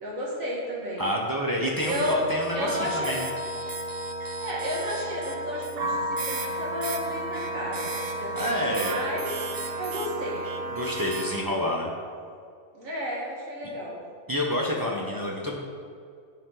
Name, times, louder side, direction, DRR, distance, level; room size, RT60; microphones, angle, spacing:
voice 1, 0.0-1.1 1.9-3.2 4.4-9.3 9.8-10.4 12.7-14.0 15.0-15.2, equal, 80° right, -4 dB, 2.0 m, -32 dB
voice 2, 1.0-3.3 8.3-9.1 10.7-11.9 14.3-15.6, left 1 dB, 20° right, -2 dB, 0.6 m, -28 dB
sound 1, 1.8-11.4, right 2 dB, 55° right, 0.8 m, -32 dB
9.7 x 4.6 x 3.8 m, 2.2 s
omnidirectional pair, 1.4 m